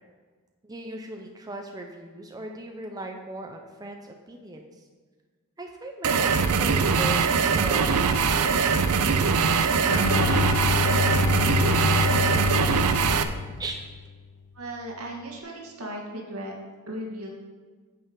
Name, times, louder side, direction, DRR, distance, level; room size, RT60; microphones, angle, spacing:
voice 1, 0.6-4.8 5.6-9.2 13.6-13.8, right 2 dB, 15° right, 3 dB, 0.6 m, -38 dB
sound 1, 6.0-13.2, right 5 dB, 90° right, 0.6 m, -22 dB
Bowed string instrument, 9.9-14.0, left 5 dB, 90° left, 0.8 m, -27 dB
voice 2, 14.5-16.5 16.9-17.3, right 1 dB, 70° right, -1 dB, 1.9 m, -36 dB
8.9 x 6.8 x 5.2 m, 1.5 s
head